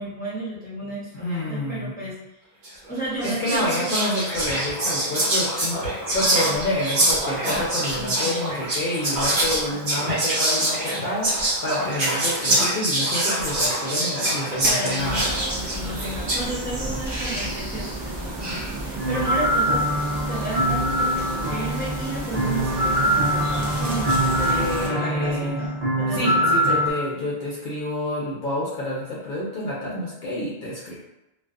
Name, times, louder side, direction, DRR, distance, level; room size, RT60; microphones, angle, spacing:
voice 1, 0.0-2.2 2.9-3.9 8.0-8.3 11.8-11.9 14.6-20.0 20.3-26.8, right 1 dB, 10° left, -8 dB, 0.6 m, -33 dB
voice 2, 1.1-1.9 3.2-15.3 24.5-25.7 26.1-31.0, left 1 dB, 60° left, -5 dB, 0.7 m, -28 dB
Whispering, 2.6-2.9 3.2-16.5, right 1 dB, 85° right, 1.2 m, -24 dB
sound 1, 15.0-24.9, right 2 dB, 40° right, 0.4 m, -31 dB
sound 2, 19.0-26.9, right 1 dB, 55° right, 0.9 m, -23 dB
2.4 x 2.4 x 2.3 m, 0.94 s
omnidirectional pair, 1.1 m